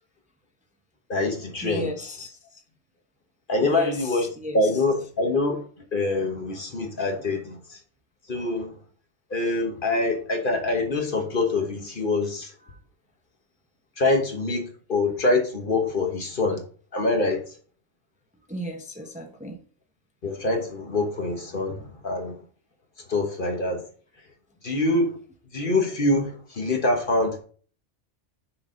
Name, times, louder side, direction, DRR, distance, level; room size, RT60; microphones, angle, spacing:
voice 1, 1.1-1.9 3.5-4.3 4.5-5.6 5.9-7.8 8.3-8.7 9.3-12.5 14.0-16.6 16.9-17.4 20.2-22.3 23.1-23.8 24.6-25.2 25.5-27.4, left 2 dB, 45° left, 1.4 m, -25 dB
voice 2, 1.6-2.6 3.6-4.8 12.6-12.8 18.5-19.6, equal, 5° right, 0.8 m, -36 dB
6.6 x 4.0 x 5.1 m
omnidirectional pair, 1.2 m